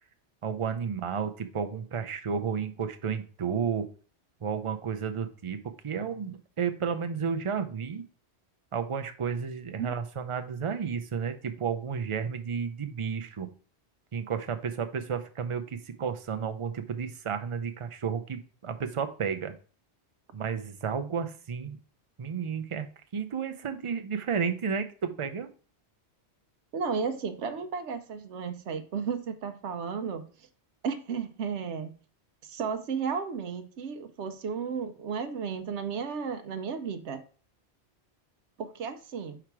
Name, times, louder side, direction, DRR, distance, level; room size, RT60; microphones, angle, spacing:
voice 1, 0.4-3.9 4.4-8.0 8.7-13.5 14.1-19.5 20.3-21.8 22.2-22.9 23.1-25.5, right 6 dB, 40° right, 8 dB, 0.5 m, -32 dB
voice 2, 26.7-30.2 30.8-31.9 32.4-37.2 38.6-39.4, right 6 dB, 80° right, 8 dB, 1.0 m, -33 dB
5.0 x 4.5 x 4.6 m, 0.40 s
omnidirectional pair, 1.1 m